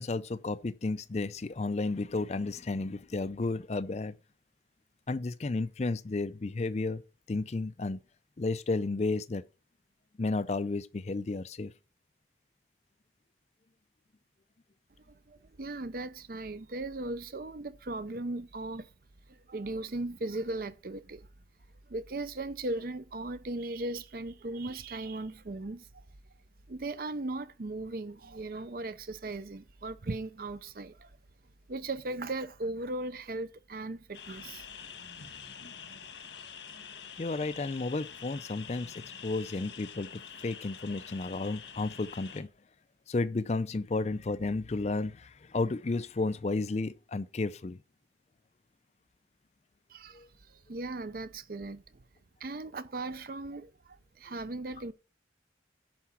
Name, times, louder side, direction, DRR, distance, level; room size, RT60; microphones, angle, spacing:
voice 1, 0.0-4.2 5.1-7.0 7.3-8.0 8.4-9.4 10.2-11.7 37.2-42.5 43.1-47.8 50.1-50.3, left 3 dB, 35° left, 0.4 m, -32 dB
voice 2, 15.1-18.9 19.3-21.3 21.9-26.0 26.7-31.1 31.7-34.7 49.9-50.2 50.5-51.8 52.4-54.9, right 2 dB, 50° right, 0.6 m, -37 dB
sound 1, 34.1-42.4, left 7 dB, 80° left, 1.5 m, -46 dB
10.5 x 4.9 x 5.7 m
head